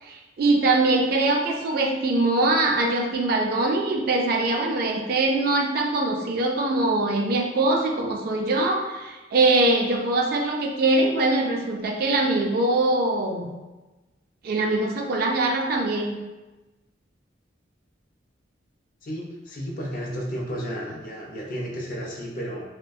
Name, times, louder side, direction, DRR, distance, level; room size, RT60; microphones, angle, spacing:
voice 1, 0.0-13.5 14.4-16.2, right 2 dB, 55° right, 2 dB, 0.3 m, -22 dB
voice 2, 19.0-22.6, equal, 50° left, -2 dB, 0.5 m, -32 dB
2.5 x 2.1 x 2.3 m, 1.1 s
head